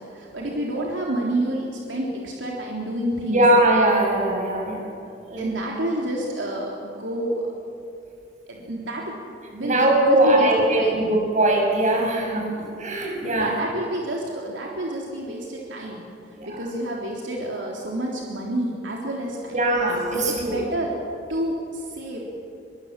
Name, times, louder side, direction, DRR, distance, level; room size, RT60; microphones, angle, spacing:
voice 1, 0.0-3.4 5.3-7.5 8.5-9.2 9.5-10.5 10.7-11.0 13.3-16.0 16.5-19.6 20.1-20.9 21.3-22.2, right 1 dB, 80° right, -2 dB, 3.6 m, -29 dB
voice 2, 3.3-4.9 5.3-5.5 9.6-13.6 16.3-16.6 19.5-20.6, right 1 dB, 45° right, 0 dB, 6.9 m, -21 dB
24.0 x 24.0 x 7.6 m, 2.5 s
head